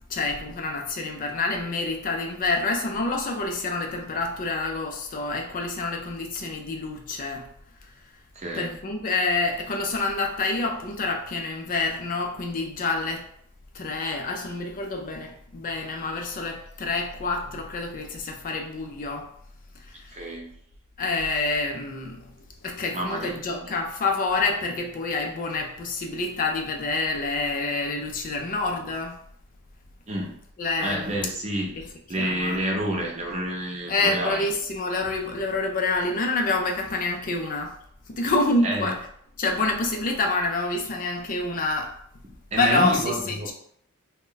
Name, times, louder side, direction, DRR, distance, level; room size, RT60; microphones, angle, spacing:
voice 1, 0.1-7.5 8.5-13.3 13.7-19.3 19.8-20.1 21.0-22.3 22.6-29.2 30.6-31.2 32.2-32.6 33.9-37.7 38.1-38.9 39.4-41.9 42.6-43.5, left 3 dB, 40° left, 2 dB, 0.4 m, -27 dB
voice 2, 8.3-8.7 20.1-20.5 22.9-23.7 30.1-30.3 30.8-34.4 38.6-38.9 42.5-43.5, right 1 dB, 30° right, -1 dB, 0.6 m, -29 dB
2.5 x 2.2 x 3.7 m, 0.66 s
head